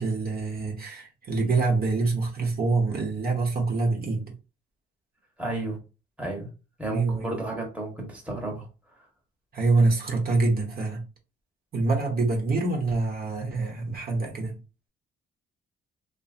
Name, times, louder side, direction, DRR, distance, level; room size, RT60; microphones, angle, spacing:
voice 1, 0.0-4.4 6.9-7.4 9.5-11.0 11.7-14.6, right 3 dB, 50° right, 0.9 m, -25 dB
voice 2, 5.4-5.8 6.2-6.5 6.8-8.7, right 2 dB, 5° right, 1.0 m, -32 dB
2.7 x 2.5 x 2.4 m
cardioid pair, 90°, 20 cm